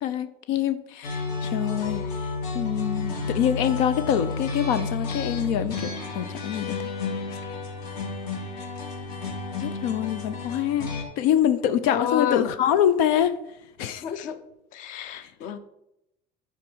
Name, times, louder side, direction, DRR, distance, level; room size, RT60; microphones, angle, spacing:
voice 1, 0.0-6.7 9.6-10.9 11.2-13.4 13.8-14.0 15.2-15.3, left 10 dB, 90° left, 12 dB, 0.7 m, -25 dB
sound 1, 1.0-11.0, left 3 dB, 65° left, 2.7 m, -31 dB
voice 2, 11.9-12.5 14.0-14.4 14.7-15.6, left 9 dB, 50° left, 11 dB, 0.9 m, -29 dB
11.0 x 4.8 x 6.3 m, 0.83 s
cardioid pair, 175°, 17 cm